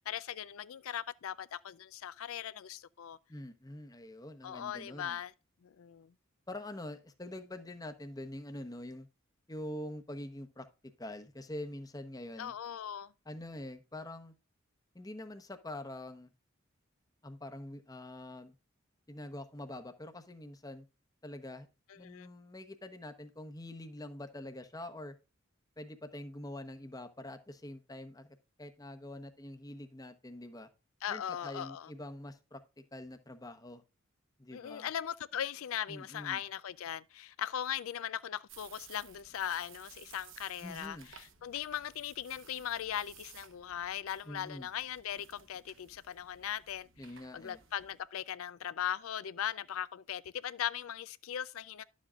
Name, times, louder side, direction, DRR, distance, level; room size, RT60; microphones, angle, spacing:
voice 1, 0.0-3.2 4.4-5.3 5.6-6.1 12.4-13.1 22.0-22.3 31.0-31.9 34.5-46.9 47.3-51.8, left 10 dB, 80° left, 0.4 m, -39 dB
voice 2, 3.3-5.2 6.5-9.1 9.5-10.7 11.0-12.5 13.3-14.3 14.9-16.3 17.2-18.5 19.1-20.8 21.2-21.7 21.9-25.1 25.8-30.7 31.1-32.6 32.9-33.8 34.4-34.9 35.9-36.4 40.6-41.1 44.2-44.7 47.0-47.6, left 1 dB, 15° left, 0.9 m, -45 dB
sound 1, 38.5-48.0, right 8 dB, 65° right, 1.2 m, -57 dB
11.5 x 7.3 x 2.4 m
head